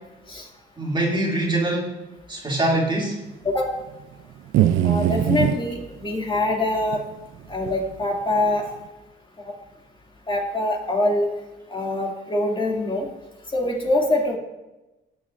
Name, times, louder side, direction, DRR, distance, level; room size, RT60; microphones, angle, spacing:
voice 1, 0.8-1.9 2.3-3.2, right 1 dB, 25° right, -3 dB, 2.8 m, -23 dB
sound 1, 4.5-5.6 6.9-7.0 7.7-7.8, right 11 dB, 80° right, 0.5 m, -20 dB
voice 2, 4.8-7.0 7.5-8.6 10.3-11.3 11.7-13.1 13.5-14.3, left 2 dB, 25° left, -2 dB, 2.7 m, -24 dB
18.5 x 7.2 x 2.6 m, 1.0 s
cardioid pair, 90°, 20 cm